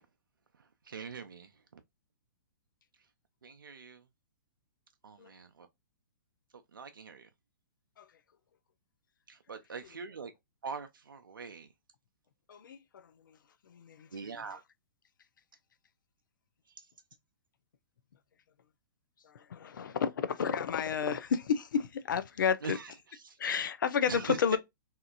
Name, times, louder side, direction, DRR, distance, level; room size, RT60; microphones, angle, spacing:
voice 1, 0.9-1.8 3.4-4.0 5.0-5.7 6.5-7.3 9.3-10.3 10.6-11.7 14.1-14.6 16.8-16.9 22.6-23.4 24.1-24.6, right 5 dB, 85° right, 0.5 m, -43 dB
voice 2, 12.5-13.4 13.7-14.4 19.2-22.8 23.4-24.6, left 7 dB, 75° left, 0.4 m, -32 dB
2.8 x 2.4 x 2.3 m
hypercardioid pair, 125°, 11 cm